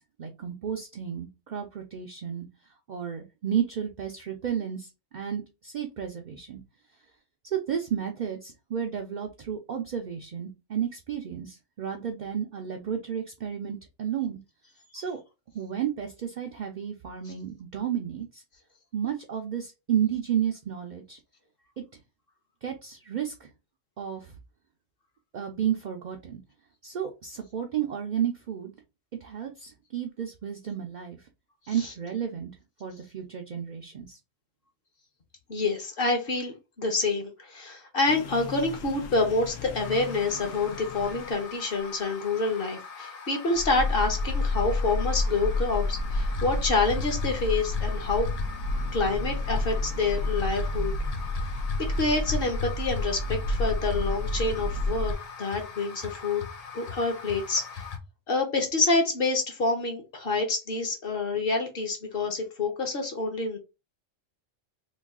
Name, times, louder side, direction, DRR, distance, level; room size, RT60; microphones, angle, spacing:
voice 1, 0.0-2.5 2.9-6.6 7.5-14.4 14.9-15.2 15.5-18.4 18.9-21.2 22.6-23.5 24.0-24.3 25.3-26.4 26.8-28.7 29.2-31.2 31.7-32.5 32.8-34.2, right 9 dB, 60° right, 3 dB, 0.4 m, -32 dB
voice 2, 35.5-48.3 48.9-50.9 52.0-55.1 55.4-56.4 56.7-57.8 58.3-63.6, left 3 dB, 50° left, 3 dB, 0.9 m, -27 dB
sound 1, 38.1-41.5 43.5-55.2, left 2 dB, 90° left, 1.1 m, -30 dB
sound 2, 39.8-58.0, left 6 dB, 65° left, 0.3 m, -39 dB
3.1 x 2.3 x 3.5 m, 0.27 s
omnidirectional pair, 1.3 m